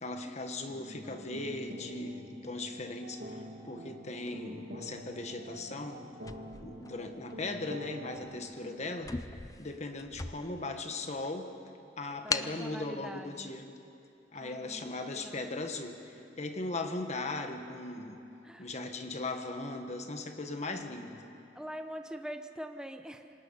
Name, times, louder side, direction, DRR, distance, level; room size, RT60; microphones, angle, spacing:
voice 1, 0.0-6.0 6.6-9.1 9.6-11.5 12.0-13.7 14.3-18.2 18.6-21.2, left 2 dB, 40° left, 6 dB, 1.5 m, -38 dB
sound 1, 0.7-8.4, equal, 60° right, 2.4 m, -46 dB
voice 2, 0.9-1.3 8.6-8.8 12.2-13.5 14.4-15.4 18.4-18.7 21.5-23.3, equal, 5° right, 6 dB, 0.9 m, -44 dB
sound 2, 6.2-7.5 8.1-8.3 8.6-8.7 9.0-10.7 11.2-11.3 12.3-12.6, left 4 dB, 20° left, 0.5 m, -38 dB
26.5 x 18.5 x 5.7 m, 2.7 s
head